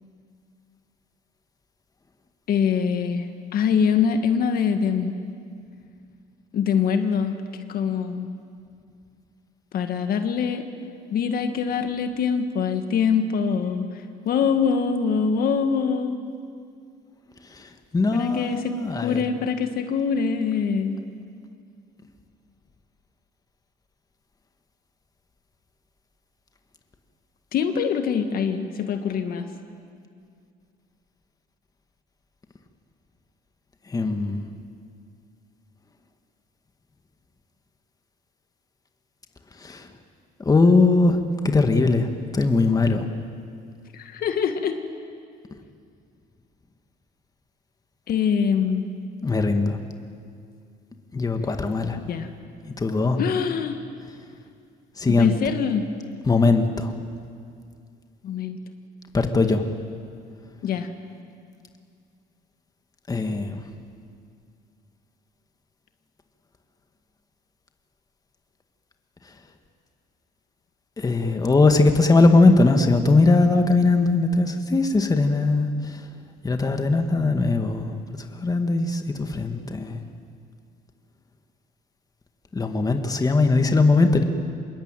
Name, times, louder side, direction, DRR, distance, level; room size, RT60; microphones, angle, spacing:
voice 1, 2.5-3.3 3.5-5.2 6.5-7.4 7.7-8.3 9.7-10.6 11.1-13.9 14.3-16.2 18.1-21.0 27.5-29.5 43.9-44.8 48.1-48.8 52.1-52.3 53.2-53.8 55.1-55.9 58.2-58.6 60.6-60.9, left 6 dB, 60° left, 7 dB, 1.9 m, -24 dB
voice 2, 17.5-19.2 33.9-34.4 39.6-39.9 40.4-41.2 41.4-43.1 49.2-49.8 51.1-52.0 52.7-53.2 55.0-55.5 56.2-56.9 59.1-59.6 63.1-63.6 71.0-76.0 76.4-78.0 78.3-80.0 82.5-84.2, left 3 dB, 20° left, 6 dB, 1.9 m, -20 dB
25.5 x 22.0 x 9.2 m, 2.3 s
cardioid pair, 110°, 17 cm